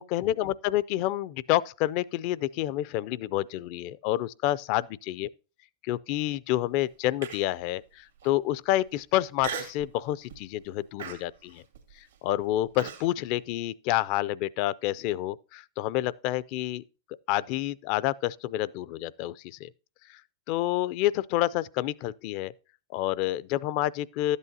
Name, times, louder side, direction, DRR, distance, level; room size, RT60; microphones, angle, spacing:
voice 1, 0.0-5.3 5.8-11.6 12.2-16.8 17.3-19.7 20.1-20.2 20.5-22.5 22.9-24.4, left 15 dB, 50° left, 0.4 m, -28 dB
Human voice, 7.2-7.6 8.2-8.3 9.4-9.9 10.3-10.6 11.0-13.1, right 6 dB, 85° right, 1.7 m, -38 dB
12.0 x 8.2 x 2.7 m
hypercardioid pair, 105°, 0 cm